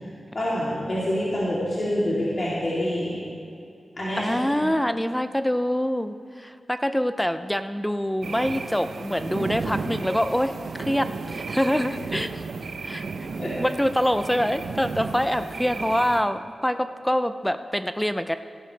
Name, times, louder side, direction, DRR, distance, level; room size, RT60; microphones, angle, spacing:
voice 1, 0.3-3.2 4.0-4.7 11.7-11.8 13.4-13.5, equal, 45° left, -9 dB, 3.3 m, -27 dB
voice 2, 4.2-12.4 12.8-13.0 13.6-18.4, equal, 5° left, 10 dB, 0.5 m, -25 dB
sound 1, 8.2-16.2, right 4 dB, 80° right, 0.7 m, -33 dB
17.5 x 11.0 x 3.4 m, 2.6 s
wide cardioid pair, 75°, 0 cm